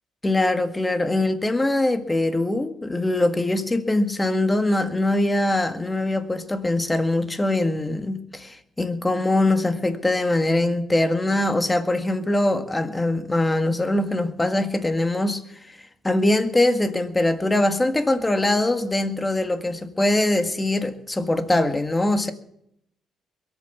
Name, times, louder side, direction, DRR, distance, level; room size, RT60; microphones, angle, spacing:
voice 1, 0.2-15.4 15.7-15.8 16.0-22.3, left 1 dB, 15° left, 1.8 m, -22 dB
22.0 x 8.7 x 7.1 m
cardioid pair, 90°, 0 cm